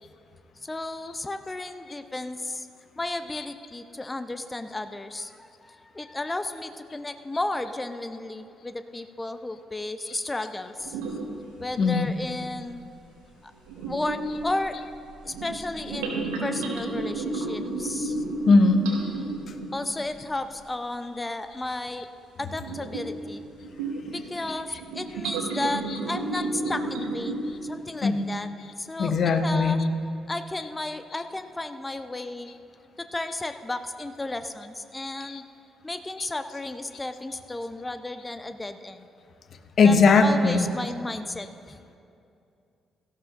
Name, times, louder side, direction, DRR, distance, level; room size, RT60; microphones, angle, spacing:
voice 1, 0.6-2.7 3.0-11.0 11.6-12.8 13.4-13.5 13.8-14.8 15.2-18.2 19.7-22.1 22.4-23.4 24.1-28.5 28.8-29.8 30.3-32.5 33.0-35.4 35.8-39.1 39.8-41.8, left 2 dB, 20° left, 9 dB, 0.7 m, -33 dB
sound 1, 10.8-11.5 12.1-12.2 13.7-20.0 22.5-23.2 23.6-24.4 24.8-27.7, right 3 dB, 75° right, 1.3 m, -32 dB
voice 2, 11.8-12.1 18.5-18.9 28.0-28.2 29.0-29.8 35.2-35.4 39.8-40.7, left 4 dB, 50° left, 8 dB, 0.8 m, -19 dB
17.0 x 14.0 x 2.6 m, 2.5 s
figure-of-eight pair, 40°, 0 cm